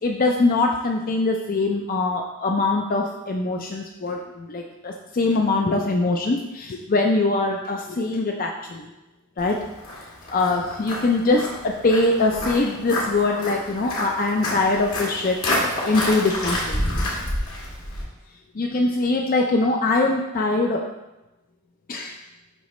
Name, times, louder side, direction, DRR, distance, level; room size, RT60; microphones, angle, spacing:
voice 1, 0.0-8.9 9.4-9.6 10.3-15.5 15.8-16.8 18.5-20.9 21.9-22.2, left 2 dB, 40° left, 2 dB, 0.4 m, -22 dB
Walk footsteps, 9.4-18.0, left 1 dB, 70° left, 2.0 m, -29 dB
11.5 x 4.0 x 3.1 m, 1.0 s
head